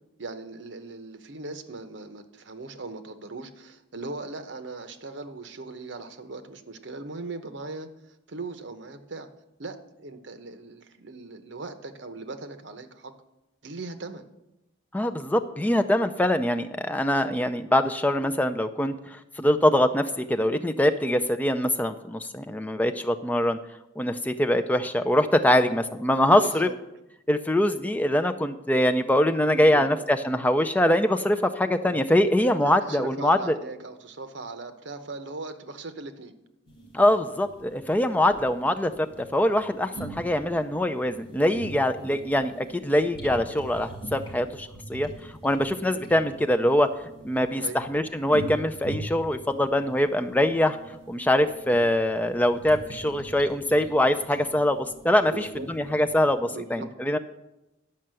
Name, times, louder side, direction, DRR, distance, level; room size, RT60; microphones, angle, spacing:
voice 1, 0.2-7.9 8.3-9.3 9.6-13.1 13.6-14.2 25.6-25.7 26.2-26.7 29.6-29.9 31.8-32.0 32.6-36.3 42.0-42.3 47.4-47.8 55.3-55.7 56.4-56.9, right 3 dB, 70° right, 9 dB, 0.9 m, -39 dB
voice 2, 14.9-23.6 24.0-26.7 27.3-33.6 36.9-39.1 39.3-45.1 45.4-46.9 47.2-50.8 51.1-57.2, left 1 dB, 10° left, 8 dB, 0.4 m, -23 dB
sound 1, 36.7-56.3, right 2 dB, 25° left, 3.4 m, -43 dB
11.0 x 5.6 x 7.6 m, 0.92 s
head